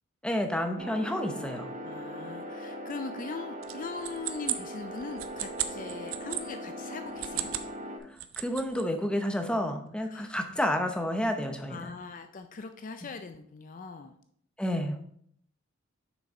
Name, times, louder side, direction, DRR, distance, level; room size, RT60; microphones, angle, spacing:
voice 1, 0.2-1.7 8.4-11.9 14.6-15.0, left 1 dB, 5° left, 5 dB, 0.7 m, -30 dB
sound 1, 0.8-8.0, equal, 40° right, 1.2 m, -40 dB
voice 2, 1.8-7.5 10.0-10.4 11.7-14.2, left 4 dB, 40° left, 8 dB, 0.4 m, -41 dB
sound 2, 3.6-6.4 7.1-7.7 8.0-8.8, right 12 dB, 75° right, 0.6 m, -35 dB
6.4 x 6.2 x 4.3 m, 0.66 s
head